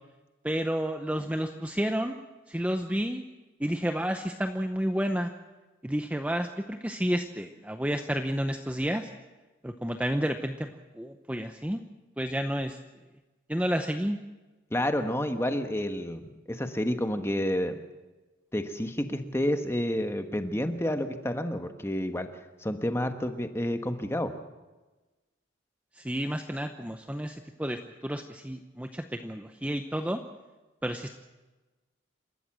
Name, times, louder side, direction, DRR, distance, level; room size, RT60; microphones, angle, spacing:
voice 1, 0.4-2.2 2.5-3.2 3.6-5.3 5.8-9.1 9.6-11.8 12.2-12.8 13.5-14.2 25.9-30.2 30.8-31.1, equal, 5° right, 6 dB, 0.7 m, -30 dB
voice 2, 14.7-17.7 18.5-22.3 22.6-24.3, left 1 dB, 15° left, 7 dB, 1.3 m, -29 dB
28.0 x 13.5 x 7.5 m, 1.2 s
head